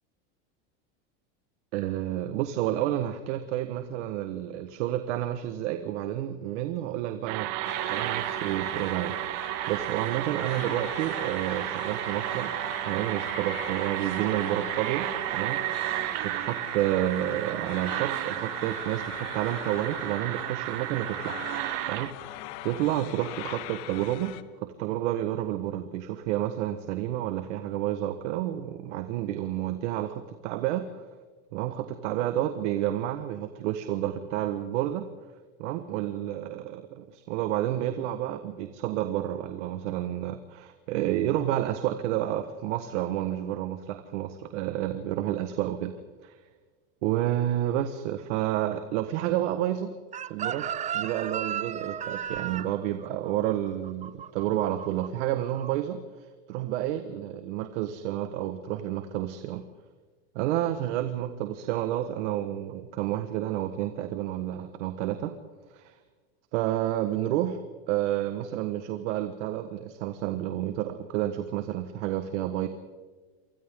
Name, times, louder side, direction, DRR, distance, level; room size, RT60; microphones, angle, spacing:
voice 1, 1.7-7.5 7.9-9.2 9.7-12.5 12.8-15.9 16.2-21.4 21.9-24.3 24.6-31.0 31.5-35.1 35.6-45.9 46.2-46.4 47.0-49.9 50.3-59.7 60.3-65.4 65.7-66.0 66.5-67.6 67.9-72.7, right 12 dB, 75° right, 8 dB, 1.6 m, -30 dB
sound 1, 7.3-22.1, right 19 dB, 55° right, 0.8 m, -32 dB
sound 2, 7.6-24.4, left 15 dB, 60° left, 1.3 m, -42 dB
Chicken rooster, 50.1-55.1 55.4-55.7, right 9 dB, 20° right, 0.5 m, -34 dB
29.0 x 25.0 x 3.8 m, 1.4 s
supercardioid pair, 130°, 36 cm